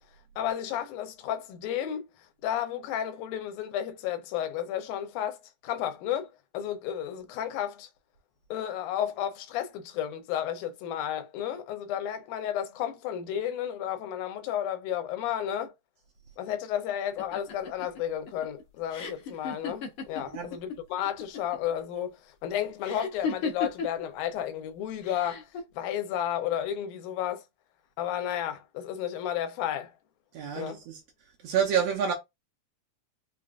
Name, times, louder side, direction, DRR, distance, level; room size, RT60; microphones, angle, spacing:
voice 1, 0.4-2.1 2.4-6.3 6.5-7.9 8.5-15.7 16.4-25.5 25.7-27.4 28.0-29.9 30.6-30.8, left 10 dB, 85° left, 2.1 m, -32 dB
sound 1, 17.2-20.8 21.0-21.7 22.8-24.0 25.0-25.6, left 5 dB, 65° left, 1.4 m, -35 dB
voice 2, 30.3-31.0 31.4-32.1, right 8 dB, 70° right, 1.6 m, -28 dB
5.1 x 2.4 x 2.4 m
omnidirectional pair, 3.5 m